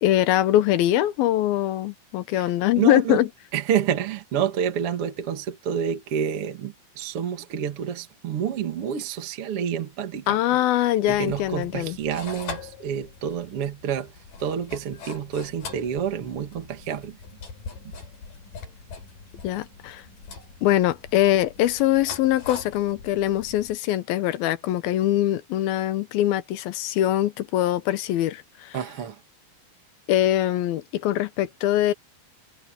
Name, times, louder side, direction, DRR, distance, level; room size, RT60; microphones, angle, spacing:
voice 1, 0.0-3.3 10.3-12.0 19.4-20.0 20.6-28.8 30.1-31.9, left 13 dB, 80° left, 2.8 m, -23 dB
voice 2, 2.3-3.2 3.5-10.6 11.1-14.1 14.4-17.2 28.7-29.2, right 8 dB, 45° right, 2.2 m, -28 dB
sound 1, 11.1-23.8, left 4 dB, 65° left, 6.4 m, -42 dB
omnidirectional pair, 4.3 m